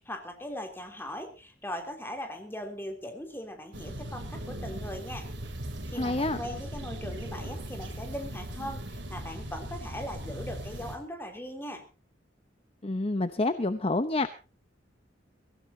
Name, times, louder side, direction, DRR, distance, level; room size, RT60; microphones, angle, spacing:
voice 1, 0.0-5.3 5.9-11.8, equal, 10° left, 4 dB, 3.3 m, -39 dB
sound 1, 3.7-11.0, right 1 dB, 75° right, 3.4 m, -39 dB
voice 2, 5.9-6.4 12.8-14.3, left 2 dB, 30° left, 11 dB, 0.8 m, -28 dB
23.5 x 16.0 x 2.8 m, 0.32 s
head